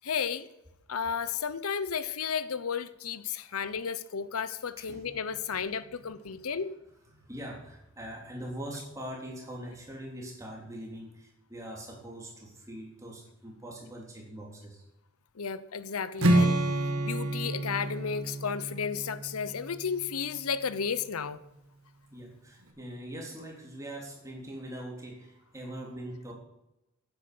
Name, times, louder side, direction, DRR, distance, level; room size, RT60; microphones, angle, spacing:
voice 1, 0.0-0.5 0.9-6.7 15.4-16.6 17.0-21.4, left 6 dB, 85° left, 15 dB, 0.8 m, -33 dB
voice 2, 4.8-5.4 5.8-6.5 7.1-14.9 16.8-16.9 22.1-26.3, right 1 dB, 15° right, -1 dB, 3.5 m, -43 dB
Strum, 16.2-20.3, right 1 dB, 85° right, 2.0 m, -28 dB
10.0 x 10.0 x 7.7 m, 0.89 s
head